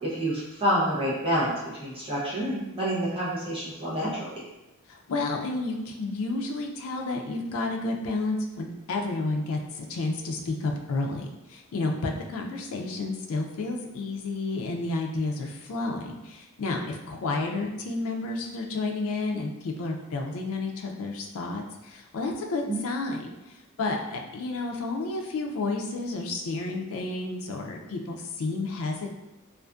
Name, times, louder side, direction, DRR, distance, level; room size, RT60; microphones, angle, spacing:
voice 1, 0.0-1.5 1.8-4.3 22.7-22.8, equal, 25° right, -8 dB, 0.7 m, -28 dB
voice 2, 4.9-29.1, left 3 dB, 65° left, 2 dB, 0.4 m, -31 dB
2.5 x 2.4 x 2.3 m, 1.0 s
head